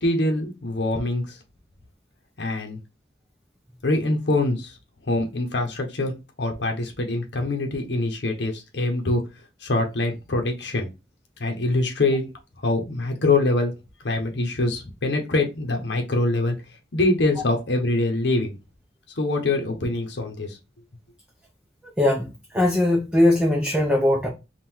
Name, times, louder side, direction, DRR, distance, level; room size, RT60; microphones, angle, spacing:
voice 1, 0.0-1.4 2.4-2.8 3.8-4.8 5.1-9.2 9.6-10.9 11.4-12.3 12.6-13.7 14.0-16.6 16.9-18.5 19.2-20.6, left 2 dB, 75° left, 0.8 m, -24 dB
voice 2, 22.0-22.3 22.5-24.3, left 1 dB, 5° right, 0.7 m, -20 dB
3.7 x 2.4 x 4.4 m
head